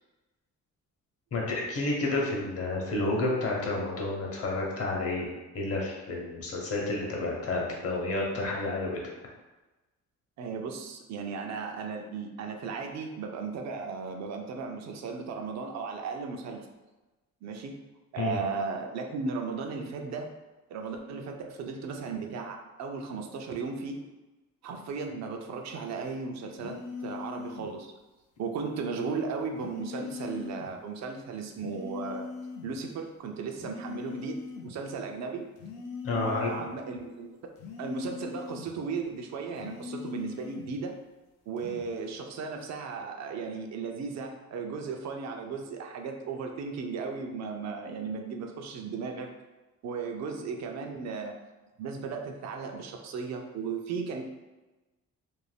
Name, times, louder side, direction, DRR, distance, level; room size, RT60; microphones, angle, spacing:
voice 1, 1.3-5.3 5.5-9.0 18.2-18.4 36.0-36.5, left 2 dB, 50° left, -1 dB, 0.8 m, -30 dB
voice 2, 10.4-16.7 17.4-17.8 18.1-20.3 20.7-24.0 24.6-27.9 28.4-32.3 32.6-35.4 36.1-37.4 37.8-40.9 41.5-49.3 49.8-51.3 51.8-54.3, right 5 dB, 60° right, 3 dB, 0.5 m, -36 dB
sound 1, 26.6-27.7 29.6-30.7 31.6-32.7 33.6-34.7 35.6-36.7 37.6-38.7 39.6-40.7 41.6-41.9, left 5 dB, 90° left, 0.5 m, -40 dB
2.6 x 2.1 x 3.2 m, 1.1 s
cardioid pair, 90°, 30 cm